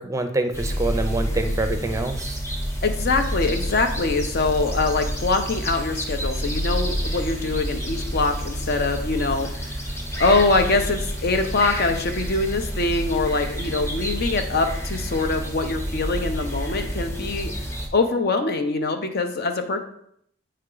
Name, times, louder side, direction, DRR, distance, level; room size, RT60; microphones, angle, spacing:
voice 1, 0.0-2.4, right 2 dB, 15° right, 7 dB, 0.5 m, -26 dB
sound 1, 0.5-17.9, equal, 15° left, 0.8 m, -29 dB
voice 2, 2.8-9.8 10.2-17.5 17.9-19.8, left 3 dB, 50° left, 7 dB, 0.7 m, -23 dB
9.3 x 3.3 x 3.8 m, 0.70 s
head